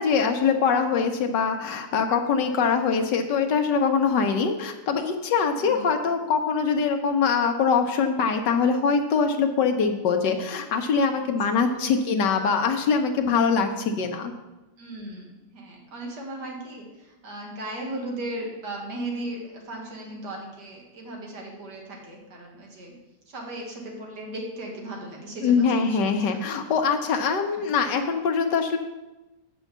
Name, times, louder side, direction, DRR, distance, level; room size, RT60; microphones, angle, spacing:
voice 1, 0.0-14.3 25.4-28.8, left 5 dB, 90° left, 5 dB, 1.5 m, -23 dB
voice 2, 5.5-5.9 11.2-12.0 14.8-23.0 23.3-26.4 27.5-27.6, right 1 dB, 75° right, 0 dB, 2.2 m, -37 dB
7.2 x 5.5 x 6.7 m, 1.1 s
omnidirectional pair, 1.8 m